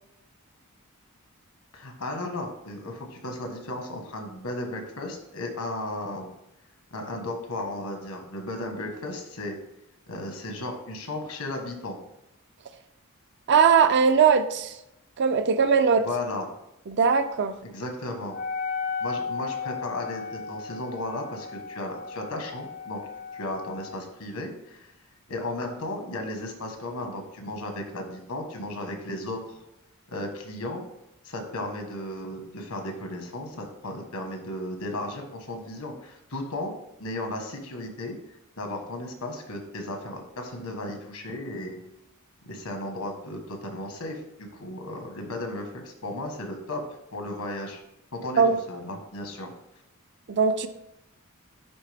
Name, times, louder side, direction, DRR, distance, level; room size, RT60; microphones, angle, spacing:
voice 1, 1.7-6.3 6.9-9.6 10.1-12.0 16.0-16.4 17.6-18.4 19.0-23.0 23.3-24.9 25.3-29.6 30.1-30.8 31.2-36.7 37.0-38.1 38.6-41.8 42.4-46.8 47.1-47.8 48.1-48.4 48.7-49.5, left 1 dB, 75° left, 4 dB, 1.4 m, -35 dB
voice 2, 13.5-14.7 15.2-16.0 16.9-17.5 48.4-48.5 50.3-50.7, right 6 dB, 50° right, 10 dB, 0.5 m, -20 dB
Wind instrument woodwind instrument, 18.3-24.0, left 5 dB, 40° left, 0.3 m, -35 dB
10.5 x 3.7 x 3.5 m, 0.84 s
head